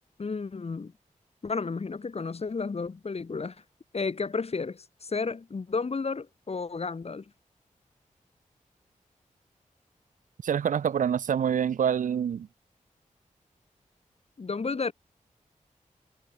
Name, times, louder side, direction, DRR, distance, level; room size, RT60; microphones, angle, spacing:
voice 1, 0.2-0.9 1.4-3.5 3.9-7.2 14.4-14.9, left 4 dB, 50° left, 1.6 m, -32 dB
voice 2, 10.4-12.5, right 8 dB, 75° right, 0.4 m, -26 dB
wide cardioid pair, 90°, 14 cm